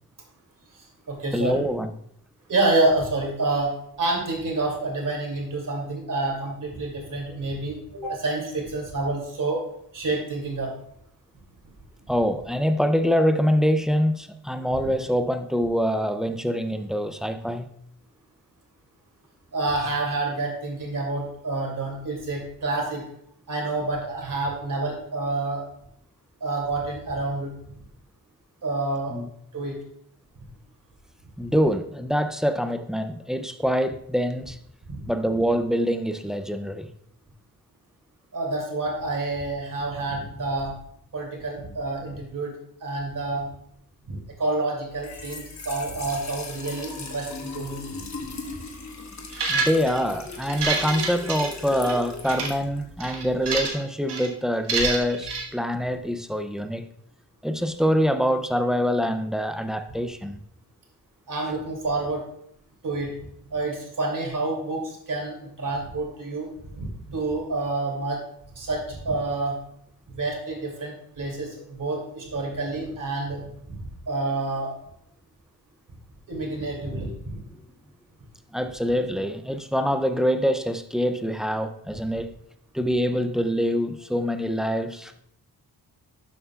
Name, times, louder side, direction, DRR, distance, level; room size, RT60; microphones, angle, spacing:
voice 1, 0.7-1.6 2.5-9.6 9.9-10.7 19.5-23.0 23.5-25.6 26.4-27.5 28.6-29.2 29.5-29.8 34.9-35.0 38.3-40.8 41.1-42.5 42.8-43.5 44.1-47.8 61.3-62.2 62.8-63.1 63.5-68.2 68.5-69.6 70.1-73.4 73.7-74.7 76.3-77.4, right 2 dB, 50° right, 2.6 m, -28 dB
voice 2, 1.3-1.9 12.1-17.7 29.1-29.3 31.4-34.6 35.1-36.9 49.5-56.9 57.4-60.4 78.5-82.3 82.7-85.2, equal, ahead, 0.4 m, -25 dB
Trickle dribble / Fill (with liquid), 44.9-53.7, left 3 dB, 40° left, 1.2 m, -38 dB
sound 1, 49.3-50.0 50.4-51.9 52.3-52.5 53.0-53.8 54.1-54.3 54.7-55.4, right 4 dB, 85° right, 1.5 m, -27 dB
12.0 x 7.4 x 2.3 m
wide cardioid pair, 160°, 40 cm